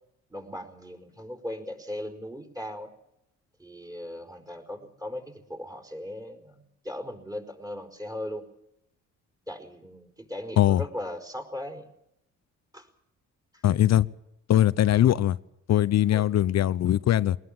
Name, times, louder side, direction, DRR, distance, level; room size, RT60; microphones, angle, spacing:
voice 1, 0.3-2.9 3.6-8.4 9.5-11.9 12.7-12.9 13.5-13.6 16.1-16.3, left 1 dB, 10° right, 4.8 m, -38 dB
voice 2, 13.6-14.1 14.5-15.4 15.7-17.4, left 12 dB, 60° left, 0.8 m, -21 dB
22.5 x 19.5 x 7.3 m
cardioid pair, 90°, 30 cm